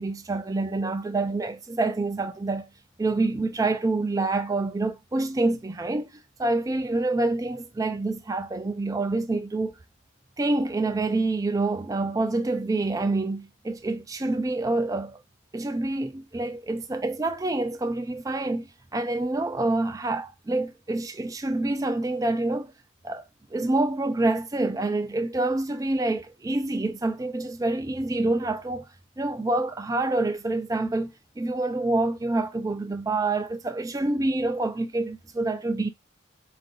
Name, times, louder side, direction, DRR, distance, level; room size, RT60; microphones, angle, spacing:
voice 1, 0.0-2.7 3.0-9.8 10.4-15.2 15.5-22.7 23.0-23.2 23.5-28.8 29.2-35.9, right 2 dB, 15° right, 0.3 m, -27 dB
3.7 x 2.5 x 3.8 m
head